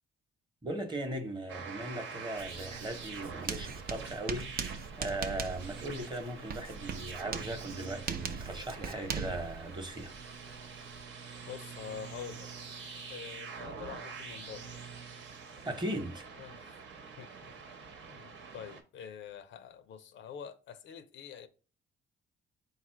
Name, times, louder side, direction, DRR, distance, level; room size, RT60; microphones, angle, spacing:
voice 1, 0.6-10.1 15.6-16.2, right 1 dB, 20° right, 0.9 m, -38 dB
sound 1, 1.5-18.8, right 5 dB, 75° right, 1.0 m, -46 dB
Writing, 2.4-11.0, right 6 dB, 50° right, 0.5 m, -41 dB
voice 2, 11.5-12.5 13.1-14.7 16.4-16.8 17.2-17.6 18.1-21.5, left 8 dB, 70° left, 0.5 m, -46 dB
4.1 x 2.4 x 4.4 m
cardioid pair, 90°, 20 cm